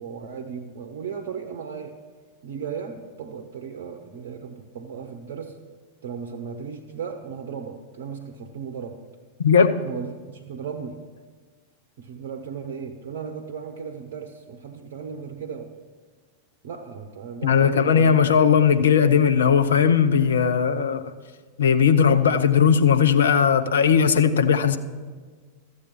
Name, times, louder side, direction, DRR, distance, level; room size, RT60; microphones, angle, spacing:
voice 1, 0.0-2.0 2.4-5.6 6.0-9.0 9.8-11.1 12.0-15.8 16.6-18.2, right 6 dB, 55° right, 0.8 m, -36 dB
voice 2, 9.4-9.8 17.4-21.1 21.6-24.8, left 7 dB, 65° left, 0.6 m, -18 dB
13.5 x 7.9 x 5.7 m
figure-of-eight pair, 90°, 0 cm